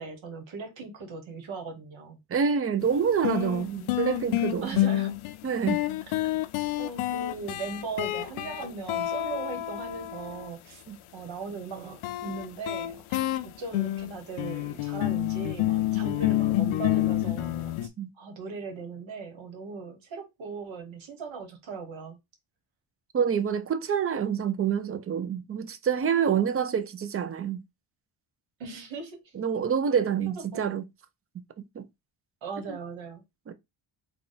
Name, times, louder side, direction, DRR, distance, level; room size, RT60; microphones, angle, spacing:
voice 1, 0.0-2.2 3.6-3.9 4.6-5.1 6.8-10.8 11.1-17.9 18.2-22.2 28.6-29.3 30.5-30.8 32.4-33.2, right 4 dB, 75° right, 1.4 m, -39 dB
voice 2, 2.3-4.8 5.4-5.8 10.9-11.0 17.8-18.1 23.1-27.6 29.3-30.8 31.6-31.9 32.7-32.8 33.5-33.6, right 7 dB, 30° right, 0.4 m, -27 dB
sound 1, 2.8-2.9 3.2-10.5 12.0-17.9, left 14 dB, 90° left, 0.6 m, -28 dB
3.6 x 2.3 x 3.9 m
cardioid pair, 115°, 47 cm